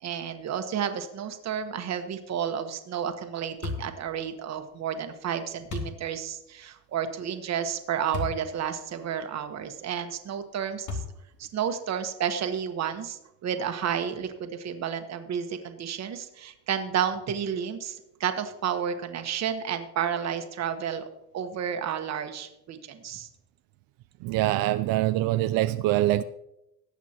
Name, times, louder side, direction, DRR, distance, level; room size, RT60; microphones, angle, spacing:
voice 1, 0.0-11.0 11.4-21.0 21.3-23.3, right 8 dB, 50° right, 7 dB, 1.3 m, -31 dB
sound 1, 3.6-4.0 5.7-6.0 8.1-8.4 9.0-9.1 10.9-11.4, left 3 dB, 55° left, 2.5 m, -33 dB
voice 2, 24.2-26.2, right 15 dB, 85° right, 11 dB, 0.5 m, -24 dB
19.0 x 8.2 x 2.9 m, 0.90 s
cardioid pair, 140°, 34 cm